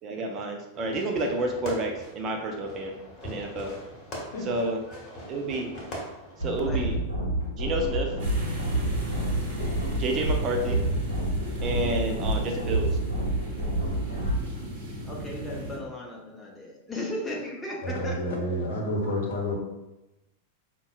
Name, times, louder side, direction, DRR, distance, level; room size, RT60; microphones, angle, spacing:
voice 1, 0.0-2.9 3.2-3.7 4.4-4.8 5.3-5.7 6.4-7.0 7.6-8.2 9.9-10.8 11.6-12.9, right 2 dB, 30° right, 1 dB, 0.5 m, -29 dB
Fireworks, 0.7-6.8, equal, 30° left, 1.1 m, -41 dB
voice 2, 4.6-5.0 6.6-6.9 15.1-18.4, left 1 dB, 10° left, -2 dB, 0.7 m, -36 dB
sound 1, 6.4-14.4, right 1 dB, 85° right, 0.8 m, -28 dB
sound 2, 8.2-15.8, right 1 dB, 50° right, 0.9 m, -36 dB
voice 3, 17.8-19.6, left 1 dB, 60° left, 0 dB, 0.8 m, -29 dB
5.3 x 2.2 x 2.4 m, 0.96 s
figure-of-eight pair, 90°, 0 cm